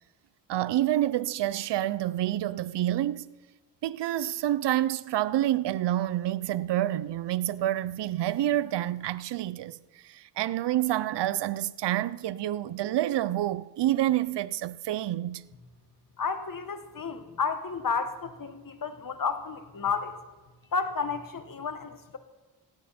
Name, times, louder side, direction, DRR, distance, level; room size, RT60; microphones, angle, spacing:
voice 1, 0.5-3.3 3.8-9.8 10.0-15.4, right 13 dB, 85° right, 0.6 m, -28 dB
voice 2, 16.2-20.2 20.7-22.2, left 5 dB, 55° left, 1.8 m, -32 dB
18.0 x 16.5 x 4.4 m
cardioid pair, 75°, 41 cm